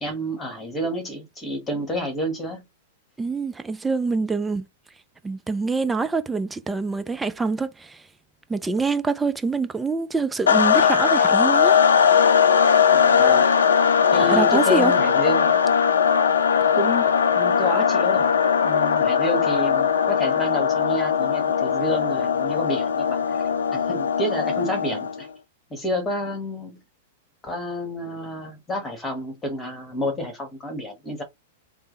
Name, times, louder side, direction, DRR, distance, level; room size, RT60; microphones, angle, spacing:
voice 1, 0.0-2.6 12.9-13.4 14.1-15.6 16.7-18.3 18.6-23.4 23.7-25.3 25.7-26.8 27.4-31.2, equal, 15° left, 1.3 m, -29 dB
voice 2, 3.2-4.7 5.2-8.0 8.5-11.8 14.2-14.9, right 4 dB, 10° right, 0.5 m, -25 dB
sound 1, 10.5-25.2, left 7 dB, 75° left, 0.5 m, -19 dB
3.3 x 2.1 x 3.1 m
figure-of-eight pair, 100°, 0 cm